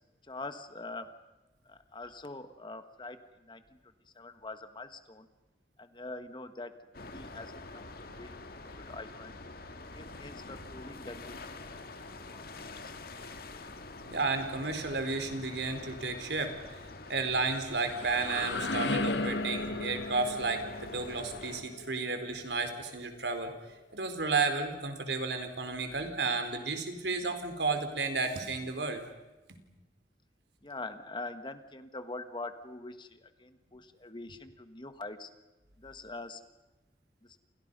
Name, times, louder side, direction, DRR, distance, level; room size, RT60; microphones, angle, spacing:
voice 1, 0.3-1.1 1.6-3.8 4.1-5.3 5.8-8.3 8.6-9.4 9.9-11.4 11.7-11.8 12.3-12.9 30.6-35.3 35.8-36.4 37.2-37.4, left 2 dB, 25° left, 9 dB, 1.5 m, -44 dB
sound 1, 6.9-21.6, left 2 dB, 60° left, 2.0 m, -46 dB
voice 2, 14.1-16.8 17.1-23.5 23.9-29.0, right 3 dB, 70° right, 6 dB, 4.1 m, -32 dB
sound 2, 17.5-23.3, left 2 dB, 85° left, 1.8 m, -36 dB
30.0 x 28.5 x 5.5 m, 1.1 s
head